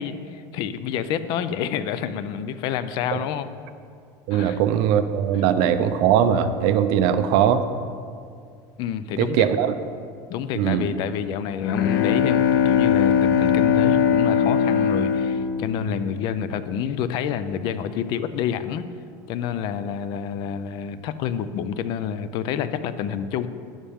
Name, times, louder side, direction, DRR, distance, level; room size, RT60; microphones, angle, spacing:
voice 1, 0.0-3.5 4.3-4.6 8.8-9.5 10.3-18.9 19.3-23.5, left 8 dB, 50° left, 13 dB, 0.5 m, -28 dB
voice 2, 4.3-7.6 9.2-9.7 10.5-10.9, right 9 dB, 60° right, 10 dB, 0.6 m, -20 dB
Bowed string instrument, 11.3-16.8, left 7 dB, 85° left, 0.8 m, -21 dB
11.0 x 10.5 x 3.6 m, 2.2 s
supercardioid pair, 150°, 10 cm